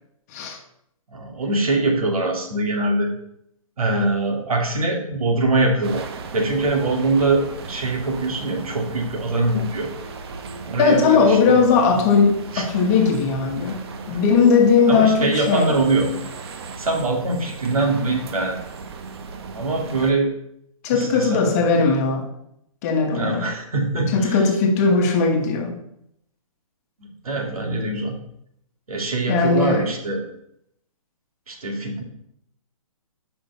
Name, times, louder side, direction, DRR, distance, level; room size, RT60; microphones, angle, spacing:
voice 1, 1.1-3.1 3.8-6.0 6.3-9.9 10.7-11.7 12.5-12.6 14.9-16.1 16.8-18.6 19.5-20.3 20.9-21.5 23.1-24.4 27.0-28.2 28.9-30.2 31.5-32.0, right 2 dB, 90° right, 1 dB, 2.3 m, -23 dB
sound 1, 5.8-20.1, right 4 dB, 45° right, 0.9 m, -36 dB
voice 2, 10.8-13.8 14.1-15.8 20.8-22.3 22.8-23.4 24.1-25.7 29.3-29.9, left 5 dB, 30° left, 4 dB, 1.2 m, -18 dB
6.7 x 5.6 x 5.5 m, 0.76 s
hypercardioid pair, 155°, 18 cm